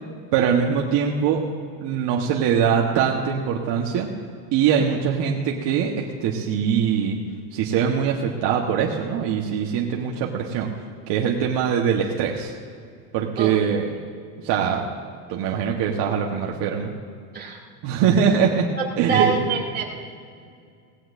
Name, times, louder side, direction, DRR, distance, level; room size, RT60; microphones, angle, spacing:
voice 1, 0.3-1.5 1.8-4.1 4.5-7.2 7.5-10.7 11.1-12.5 13.1-13.9 14.4-14.9 15.3-16.9 17.8-18.7 19.0-19.4, right 7 dB, 55° right, -1 dB, 1.4 m, -22 dB
voice 2, 18.7-19.8, right 5 dB, 20° right, -4 dB, 2.5 m, -24 dB
18.0 x 16.5 x 2.6 m, 2.2 s
supercardioid pair, 120°, 49 cm